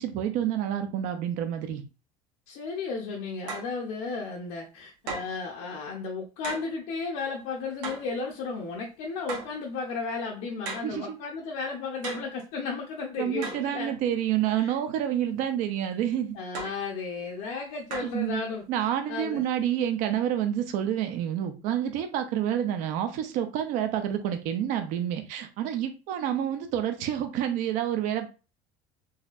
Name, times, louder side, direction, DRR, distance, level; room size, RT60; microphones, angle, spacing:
voice 1, 0.0-1.8 10.8-11.2 13.2-16.3 18.0-18.4 18.7-28.3, right 10 dB, 60° right, 0.6 m, -28 dB
voice 2, 2.5-13.9 14.5-14.8 16.3-19.4, left 4 dB, 60° left, 0.7 m, -34 dB
sound 1, 3.5-3.8 5.1-5.4 6.4-6.7 7.8-8.2 9.3-9.6 10.7-11.0 12.0-12.4 13.4-13.7 16.5-16.8 17.9-18.2, right 4 dB, 90° right, 1.1 m, -37 dB
4.0 x 2.7 x 2.4 m
cardioid pair, 165°, 15 cm